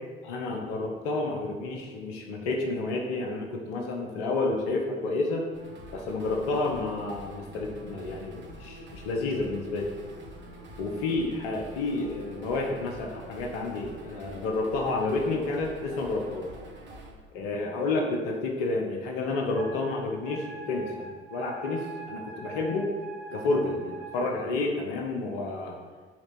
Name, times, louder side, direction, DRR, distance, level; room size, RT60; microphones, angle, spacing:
voice 1, 0.2-5.4 5.9-9.9 10.8-16.5 17.3-22.9 23.3-25.8, left 3 dB, 70° left, 2 dB, 1.3 m, -30 dB
sound 1, 5.5-17.1, equal, 40° right, 2.3 m, -46 dB
Wind instrument woodwind instrument, 19.6-24.3, right 4 dB, 70° right, 2.0 m, -43 dB
7.7 x 4.3 x 6.1 m, 1.4 s
figure-of-eight pair, 55°, 30 cm